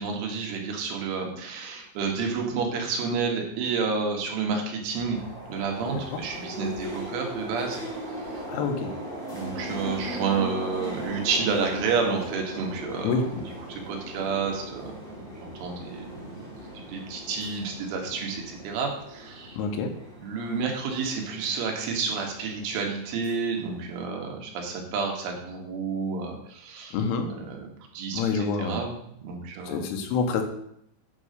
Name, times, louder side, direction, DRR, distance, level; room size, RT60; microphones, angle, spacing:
voice 1, 0.0-5.2 5.5-8.4 9.3-13.1 13.7-19.6 20.2-26.9 27.3-27.6 27.9-28.9 29.2-29.9, right 5 dB, 80° right, 1 dB, 4.2 m, -30 dB
sound 1, 4.9-24.0, equal, 55° left, 0.6 m, -39 dB
voice 2, 8.5-8.9 13.0-13.4 19.5-20.0 26.9-27.3 28.1-28.8 29.7-30.4, left 5 dB, 85° left, 5 dB, 3.7 m, -27 dB
10.5 x 4.8 x 6.6 m, 0.72 s
omnidirectional pair, 5.5 m